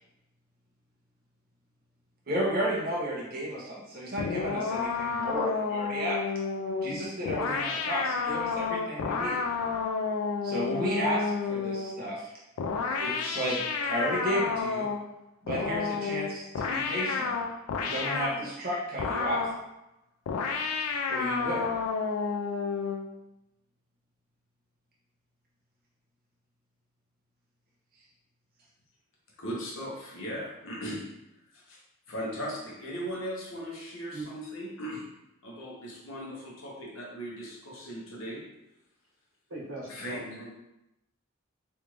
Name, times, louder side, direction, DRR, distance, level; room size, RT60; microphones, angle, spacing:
voice 1, 2.3-6.2 6.8-9.4 10.4-12.2 12.9-13.6 13.8-14.9 15.4-17.3 17.8-19.4 21.1-21.6, equal, 45° right, -4 dB, 0.9 m, -32 dB
sound 1, 4.2-12.0 12.6-15.1 15.5-18.4 19.0-19.6 20.3-23.1, left 5 dB, 85° left, 0.4 m, -31 dB
voice 2, 29.4-31.0 31.5-31.8 32.1-35.1 35.4-38.4 39.9-40.5, equal, 65° left, -4 dB, 1.0 m, -38 dB
voice 3, 39.5-40.5, right 2 dB, 75° right, -7 dB, 1.4 m, -40 dB
3.4 x 2.5 x 3.1 m, 0.88 s
head